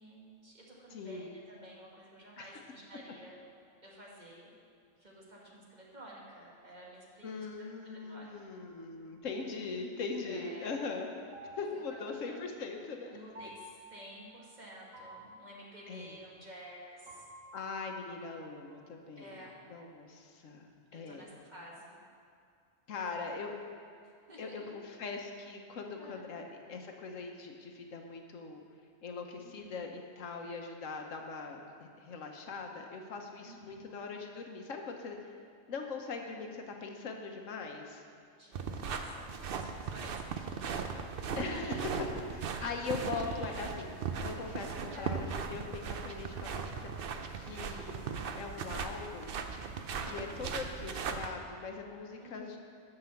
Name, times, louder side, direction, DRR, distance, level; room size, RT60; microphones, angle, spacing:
voice 1, 0.0-3.4 3.8-4.5 5.0-7.5 7.8-8.3 10.2-10.7 11.9-12.0 12.2-12.4 13.1-17.2 19.2-19.6 20.9-22.0 23.1-23.3 24.0-24.8 26.0-26.3 29.4-29.8 33.4-33.8 38.4-39.3 39.5-40.8 41.1-42.1 43.2-43.6 44.9-45.2 47.9-48.5 50.0-50.3 52.2-52.4, right 1 dB, 35° right, -4 dB, 1.8 m, -51 dB
voice 2, 0.9-1.3 2.4-2.6 7.2-11.1 11.5-13.2 15.9-16.2 17.5-21.3 22.9-23.6 24.4-28.6 29.0-35.3 35.7-38.0 41.4-41.8 42.3-43.9 44.2-46.9 47.4-49.4 50.1-52.6, left 4 dB, 80° left, 3 dB, 1.3 m, -41 dB
sound 1, 7.9-9.7 11.3-12.9 13.3-16.8 17.1-19.2, equal, 85° right, 2.0 m, -55 dB
sound 2, 38.5-51.3, right 5 dB, 55° right, 0.7 m, -38 dB
9.6 x 6.1 x 7.1 m, 2.3 s
omnidirectional pair, 1.3 m